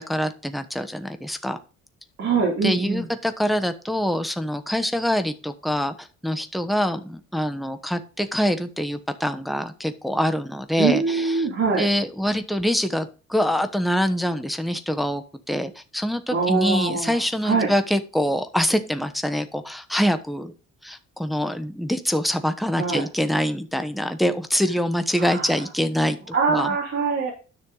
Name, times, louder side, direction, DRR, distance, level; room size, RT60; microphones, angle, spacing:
voice 1, 0.0-1.6 2.6-11.5 11.8-20.5 20.8-26.8, equal, ahead, 8 dB, 1.1 m, -25 dB
voice 2, 2.2-3.0 10.8-11.9 16.3-17.2 17.4-17.7 22.7-23.0 25.2-25.5 26.3-27.3, right 4 dB, 55° right, -4 dB, 2.7 m, -23 dB
10.0 x 6.3 x 4.0 m, 0.35 s
cardioid pair, 90°, 30 cm